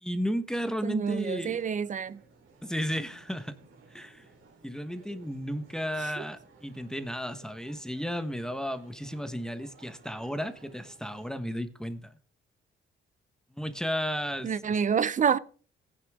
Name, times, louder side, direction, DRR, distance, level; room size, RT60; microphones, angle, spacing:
voice 1, 0.0-1.6 2.6-3.6 3.9-4.3 4.6-12.1 13.5-14.5, equal, 5° left, 1.2 m, -33 dB
voice 2, 0.8-2.2 6.0-6.2 14.4-15.4, right 7 dB, 40° right, 0.7 m, -28 dB
sound 1, 1.1-11.3, right 3 dB, 90° right, 4.2 m, -57 dB
15.5 x 9.7 x 3.6 m
cardioid pair, 90°, 20 cm